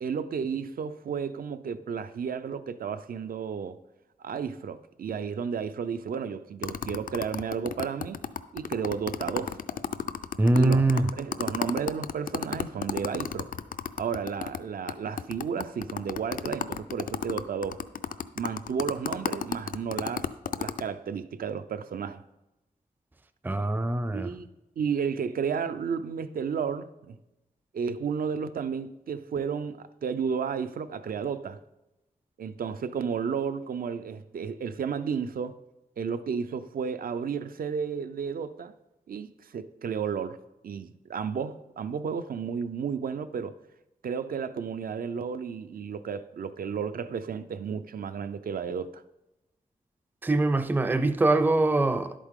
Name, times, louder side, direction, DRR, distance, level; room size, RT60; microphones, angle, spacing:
voice 1, 0.0-3.8 4.2-8.2 8.5-9.6 10.5-13.5 14.0-17.8 18.3-20.3 20.6-22.2 24.1-24.5 24.8-27.2 27.7-31.6 32.4-35.5 36.0-38.7 39.1-40.4 40.6-43.6 44.0-49.0, right 6 dB, 75° right, 0.5 m, -32 dB
sound 1, 6.6-14.6 14.9-15.0 15.2-20.8, left 8 dB, 70° left, 0.4 m, -32 dB
voice 2, 10.4-11.0 23.4-24.3 50.2-52.1, right 2 dB, 15° right, 0.4 m, -23 dB
11.0 x 8.4 x 3.7 m
wide cardioid pair, 120°, 15 cm